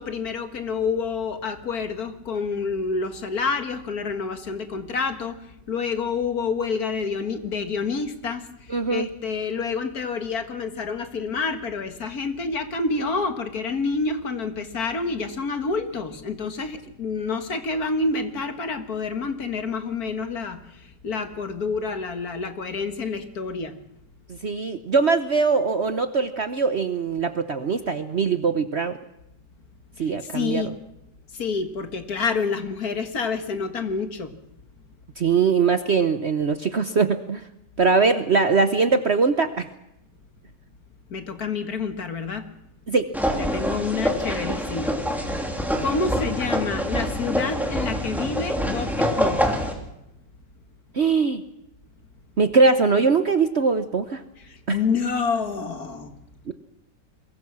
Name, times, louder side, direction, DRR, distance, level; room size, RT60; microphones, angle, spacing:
voice 1, 0.0-23.8 30.0-30.8 31.3-34.4 41.1-42.5 43.4-45.5 45.8-49.6 54.4-56.2, left 4 dB, 55° left, 8 dB, 2.0 m, -28 dB
voice 2, 8.7-9.1 24.3-29.0 30.0-30.7 35.2-37.4 37.8-39.7 42.9-43.1 50.9-51.4 52.4-54.2 54.7-54.8 56.5-56.6, right 4 dB, 45° right, 9 dB, 1.0 m, -21 dB
sound 1, 43.1-49.7, equal, ahead, 3.1 m, -25 dB
23.0 x 21.0 x 6.1 m, 0.86 s
omnidirectional pair, 1.9 m